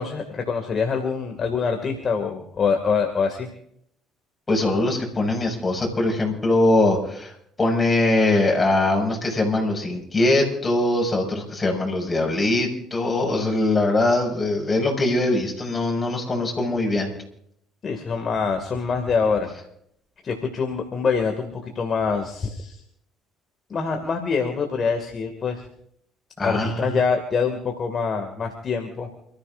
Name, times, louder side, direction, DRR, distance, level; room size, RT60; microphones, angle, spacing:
voice 1, 0.0-3.5 17.8-19.5 20.2-22.8 23.7-25.7 26.4-29.1, left 5 dB, 40° left, 4 dB, 2.3 m, -25 dB
voice 2, 4.5-7.3 7.6-17.1 26.4-26.9, left 2 dB, 25° left, 0 dB, 6.5 m, -22 dB
29.5 x 14.5 x 2.6 m, 0.70 s
hypercardioid pair, 55°, 0 cm